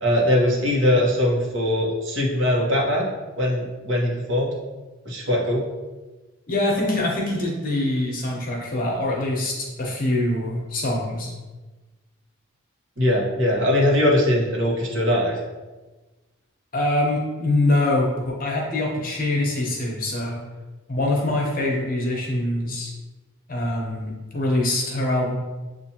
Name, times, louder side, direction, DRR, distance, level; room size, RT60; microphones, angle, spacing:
voice 1, 0.0-3.1 3.4-4.5 5.0-5.6 13.0-15.3, left 1 dB, 60° right, -3 dB, 1.1 m, -21 dB
voice 2, 6.5-11.3 16.7-20.4 20.9-22.9 23.5-25.3, left 1 dB, 40° left, -1 dB, 0.9 m, -24 dB
7.1 x 2.5 x 2.9 m, 1.2 s
head